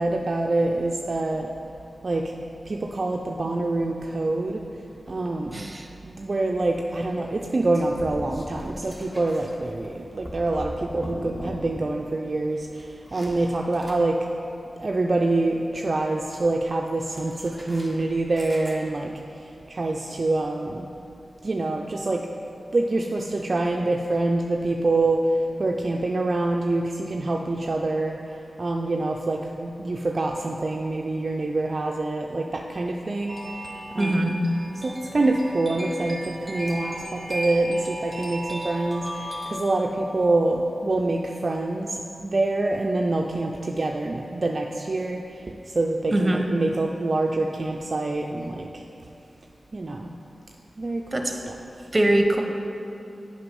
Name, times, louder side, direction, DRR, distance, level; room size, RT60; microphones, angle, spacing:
voice 1, 0.0-1.5 2.0-2.3 2.7-4.6 5.1-5.7 6.0-12.9 13.1-14.2 14.8-20.9 21.4-22.3 22.7-25.3 25.6-28.2 28.6-33.6 33.9-34.4 34.8-48.8 49.7-50.1 50.8-51.5 51.8-51.9, right 2 dB, 55° right, 1 dB, 0.4 m, -26 dB
voice 2, 5.5-5.9 34.0-34.4 46.1-46.4 51.1-51.3 51.9-52.4, right 1 dB, 35° right, 3 dB, 0.9 m, -22 dB
sound 1, 7.1-11.9 12.1-14.4 17.0-19.1, equal, 10° left, 1.3 m, -41 dB
sound 2, 33.3-39.5, equal, 15° right, 1.8 m, -35 dB
6.9 x 5.3 x 5.3 m, 2.8 s
cardioid pair, 40°, 0 cm